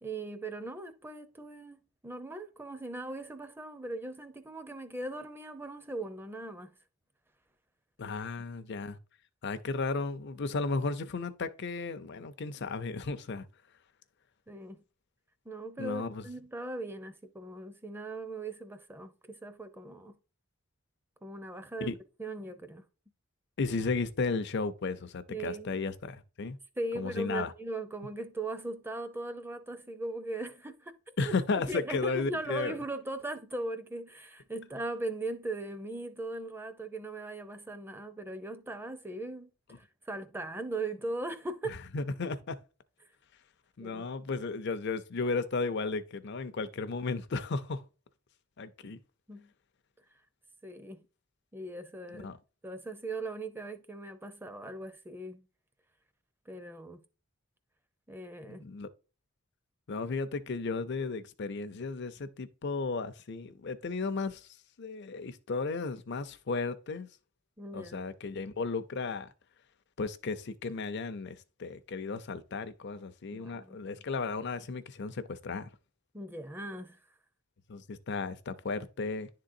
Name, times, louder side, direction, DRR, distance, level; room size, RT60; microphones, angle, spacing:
voice 1, 0.0-6.7 14.5-14.8 15.4-20.2 21.2-22.8 25.3-25.7 26.8-31.3 31.6-41.8 43.8-44.0 48.8-48.9 49.3-49.5 50.6-51.0 51.5-52.3 52.6-55.5 56.5-57.0 58.1-58.6 67.6-68.0 73.3-73.8 76.1-77.0, right 2 dB, 10° right, 0.6 m, -39 dB
voice 2, 8.0-9.0 9.4-13.4 15.8-16.2 21.8-22.0 23.6-26.6 26.9-27.5 31.2-32.7 41.9-42.6 43.8-47.8 48.6-49.0 52.1-52.4 58.6-58.9 59.9-64.5 64.8-67.1 67.7-69.3 70.0-75.7 77.7-79.3, left 4 dB, 55° left, 0.6 m, -34 dB
10.5 x 3.8 x 2.6 m
head